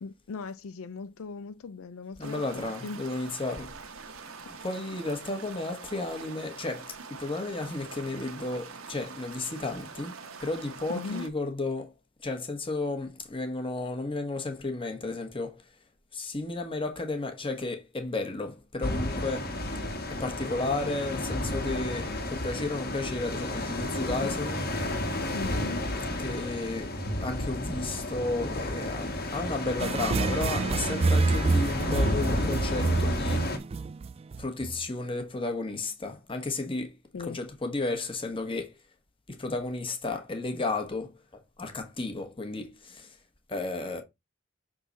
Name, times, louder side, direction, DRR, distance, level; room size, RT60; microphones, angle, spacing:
voice 1, 0.0-3.0 10.9-11.3 25.3-25.9 37.1-37.4, left 4 dB, 75° left, 0.5 m, -39 dB
voice 2, 2.2-3.7 4.5-11.9 12.2-15.6 16.1-19.6 20.1-24.7 26.2-26.9 27.2-33.5 34.4-38.7 39.3-43.2 43.5-44.0, left 2 dB, 25° left, 1.2 m, -33 dB
sound 1, 2.2-11.3, right 5 dB, 80° right, 1.1 m, -44 dB
sound 2, 18.8-33.6, left 1 dB, 50° left, 1.4 m, -32 dB
sound 3, 29.8-34.8, right 3 dB, 30° right, 0.3 m, -28 dB
6.2 x 3.8 x 4.0 m
head